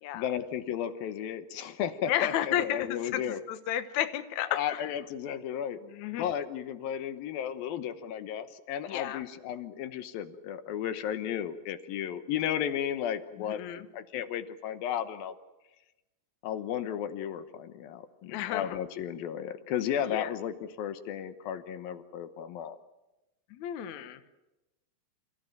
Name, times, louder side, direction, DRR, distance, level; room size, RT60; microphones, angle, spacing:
voice 1, 0.1-3.4 4.5-5.8 6.1-15.4 16.4-22.8, left 9 dB, 70° left, 11 dB, 2.5 m, -34 dB
voice 2, 2.1-4.6 5.9-6.3 8.9-9.2 13.4-13.8 18.3-18.7 20.1-20.3 23.5-24.2, left 12 dB, 85° left, 10 dB, 1.6 m, -32 dB
28.5 x 16.0 x 9.2 m, 1.0 s
omnidirectional pair, 5.1 m